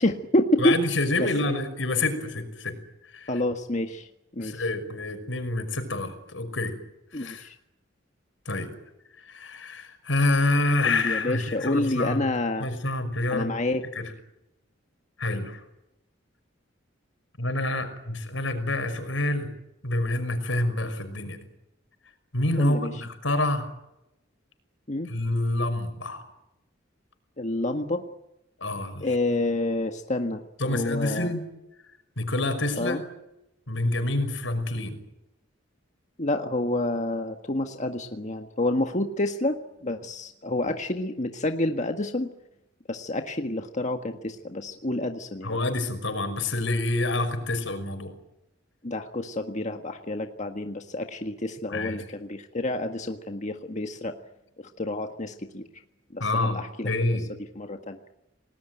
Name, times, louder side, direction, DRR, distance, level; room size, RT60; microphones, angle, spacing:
voice 1, 0.0-0.8 1.2-1.6 3.3-4.1 4.3-4.6 7.1-7.5 10.8-12.7 13.3-13.8 22.6-23.0 24.9-25.1 27.4-28.0 29.0-31.4 32.7-33.0 36.2-42.3 42.9-45.6 48.8-54.1 54.8-55.6 56.1-56.9 57.5-58.0, left 1 dB, 40° left, 5 dB, 1.7 m, -28 dB
voice 2, 0.6-2.7 3.1-3.3 4.4-6.8 7.1-7.5 8.5-8.7 9.3-12.2 12.6-13.5 14.0-14.1 15.2-15.6 17.4-19.5 19.8-21.4 22.3-23.7 25.1-26.2 28.6-29.1 30.6-31.5 32.2-33.0 33.7-35.0 45.4-48.1 51.7-52.0 56.2-57.3, left 2 dB, 85° left, 9 dB, 5.7 m, -27 dB
29.5 x 19.5 x 9.2 m, 0.89 s
head